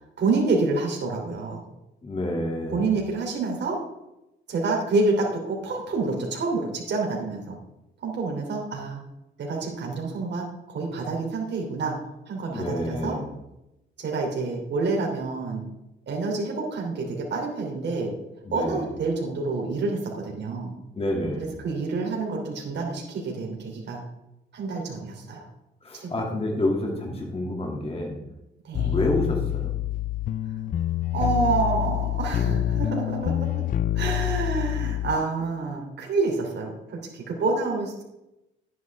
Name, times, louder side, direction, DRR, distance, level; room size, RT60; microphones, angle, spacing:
voice 1, 0.0-1.6 2.7-3.8 4.5-7.6 8.0-9.0 9.4-12.0 12.3-13.2 14.0-15.6 16.1-18.1 18.5-20.7 21.4-24.0 24.5-25.4 25.9-26.2 27.1-27.2 28.6-29.0 31.1-33.6 33.9-38.1, right 3 dB, 60° right, 0 dB, 3.1 m, -28 dB
voice 2, 2.0-2.9 12.5-13.3 18.4-18.8 20.9-21.5 25.8-28.2 28.8-29.7, left 1 dB, 30° left, 0 dB, 2.5 m, -28 dB
sound 1, 28.7-35.2, left 13 dB, 45° left, 0.4 m, -26 dB
11.0 x 9.4 x 3.6 m, 0.89 s
cardioid pair, 90°, 20 cm